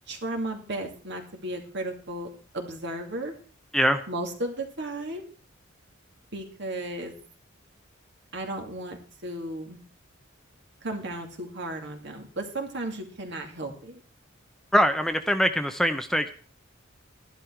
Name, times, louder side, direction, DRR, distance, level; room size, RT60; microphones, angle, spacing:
voice 1, 0.1-2.3 2.5-3.3 4.1-5.2 6.3-7.1 8.3-9.8 10.8-14.0, right 1 dB, 60° right, 3 dB, 2.5 m, -34 dB
voice 2, 14.7-16.3, equal, ahead, 8 dB, 0.6 m, -23 dB
12.0 x 11.5 x 4.6 m, 0.42 s
head